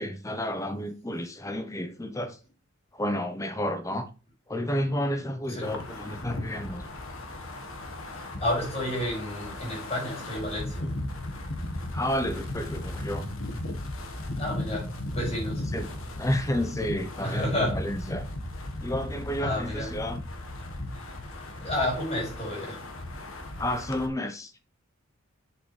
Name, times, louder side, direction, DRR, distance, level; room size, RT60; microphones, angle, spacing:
voice 1, 0.0-2.4 2.9-4.1 4.5-6.8 11.9-13.3 15.7-18.3 18.8-20.2 23.6-24.5, left 1 dB, 15° left, 0.9 m, -31 dB
Wind, 5.6-24.1, left 1 dB, 75° left, 1.5 m, -36 dB
voice 2, 8.1-10.9 14.3-15.6 17.2-17.8 19.4-19.9 21.3-22.8, left 1 dB, 30° left, 5.2 m, -31 dB
7.9 x 6.7 x 3.3 m
head